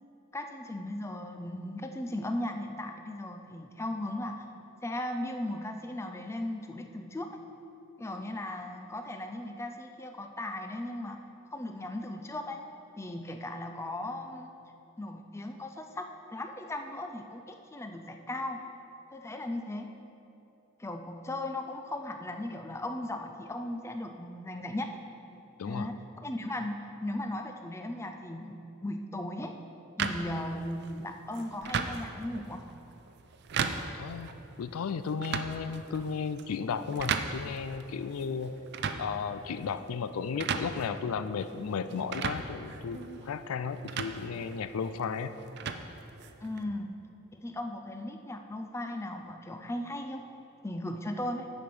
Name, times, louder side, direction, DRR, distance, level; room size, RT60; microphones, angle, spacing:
voice 1, 0.3-4.5 4.8-7.4 8.0-11.2 11.5-12.6 13.0-14.5 15.0-18.6 19.1-19.9 20.8-24.9 25.7-28.6 28.8-29.5 30.0-32.6 46.4-46.9 47.3-50.2 50.6-51.5, left 1 dB, 15° left, 5 dB, 0.4 m, -37 dB
sound 1, 30.0-46.6, right 5 dB, 50° right, 0.5 m, -38 dB
voice 2, 34.0-34.3 34.6-38.6 39.0-45.3, left 5 dB, 85° left, 11 dB, 0.4 m, -34 dB
9.7 x 5.2 x 6.0 m, 3.0 s
head